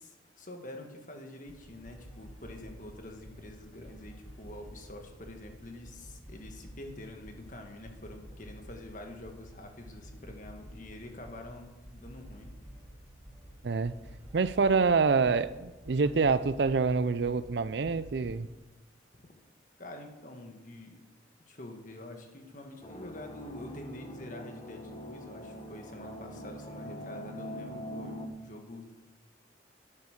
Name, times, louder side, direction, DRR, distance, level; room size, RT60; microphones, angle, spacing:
voice 1, 0.0-12.5 19.8-21.0 21.5-28.9, left 1 dB, 45° left, 3 dB, 1.7 m, -46 dB
sound 1, 1.5-18.4, equal, 5° right, 4.2 m, -50 dB
voice 2, 14.3-18.5, right 4 dB, 65° right, 15 dB, 0.5 m, -26 dB
sound 2, 22.8-28.3, equal, 30° left, 1.2 m, -43 dB
10.0 x 8.3 x 6.5 m, 1.1 s
head